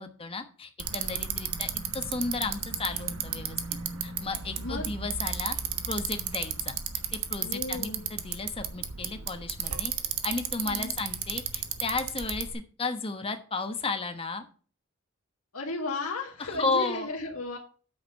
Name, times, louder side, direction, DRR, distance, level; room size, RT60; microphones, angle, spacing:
voice 1, 0.0-3.6 4.0-5.5 5.9-6.8 7.1-9.9 10.2-14.4 16.4-17.1, left 3 dB, 25° left, 7 dB, 1.1 m, -33 dB
Bicycle, 0.8-12.5, right 8 dB, 80° right, 1.2 m, -34 dB
voice 2, 4.6-4.9 7.4-8.0 10.7-10.9 15.5-17.6, left 2 dB, 85° left, -2 dB, 1.9 m, -34 dB
9.0 x 6.6 x 5.3 m, 0.40 s
head